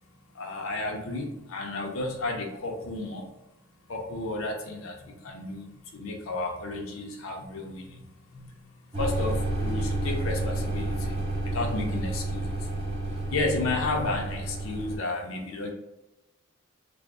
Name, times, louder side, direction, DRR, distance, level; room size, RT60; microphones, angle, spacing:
voice 1, 0.3-3.3 3.9-12.7 13.1-15.7, left 2 dB, 75° left, 1 dB, 0.5 m, -33 dB
sound 1, 8.9-15.0, right 2 dB, 30° right, 0.6 m, -30 dB
3.4 x 2.0 x 3.6 m, 0.94 s
head